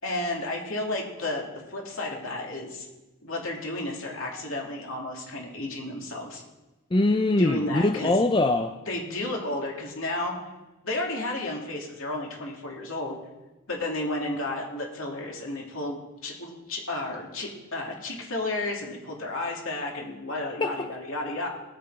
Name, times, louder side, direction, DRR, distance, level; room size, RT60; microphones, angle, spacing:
voice 1, 0.0-2.9 3.2-6.4 7.4-8.1 8.9-10.3 10.8-13.2 13.7-21.5, left 2 dB, 65° left, -1 dB, 2.8 m, -32 dB
voice 2, 6.9-8.8 20.6-20.9, left 2 dB, 20° left, 7 dB, 0.4 m, -23 dB
18.5 x 8.1 x 4.9 m, 1.1 s
head